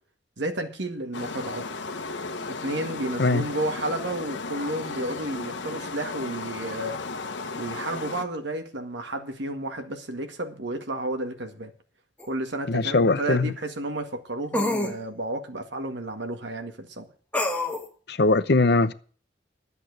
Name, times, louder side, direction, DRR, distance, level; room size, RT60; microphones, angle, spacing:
voice 1, 0.4-1.6 2.5-7.0 7.5-11.7 12.3-17.1, right 1 dB, 75° right, 1.9 m, -32 dB
sound 1, 1.1-8.3, left 3 dB, 80° left, 1.2 m, -35 dB
Content warning, 12.2-12.3 14.5-15.0 17.3-17.9, left 2 dB, 10° left, 1.4 m, -26 dB
voice 2, 12.7-13.5 18.1-18.9, left 3 dB, 60° left, 0.8 m, -21 dB
11.0 x 8.1 x 7.9 m
head